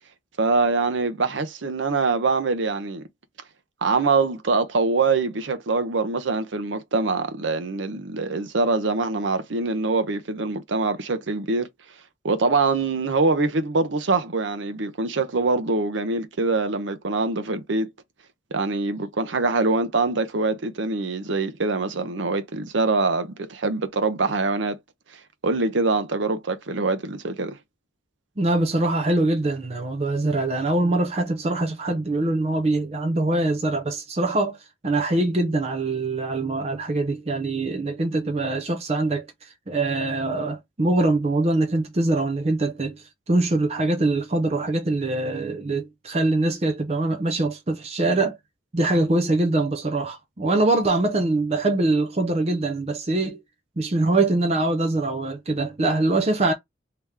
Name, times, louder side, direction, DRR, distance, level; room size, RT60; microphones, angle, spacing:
voice 1, 0.4-3.0 3.8-11.7 12.2-17.9 18.5-24.8 25.4-27.6, right 3 dB, 85° right, 0.7 m, -24 dB
voice 2, 28.4-34.6 34.8-48.4 48.7-53.4 53.8-56.5, right 2 dB, 35° right, 0.6 m, -23 dB
3.3 x 2.9 x 3.6 m
head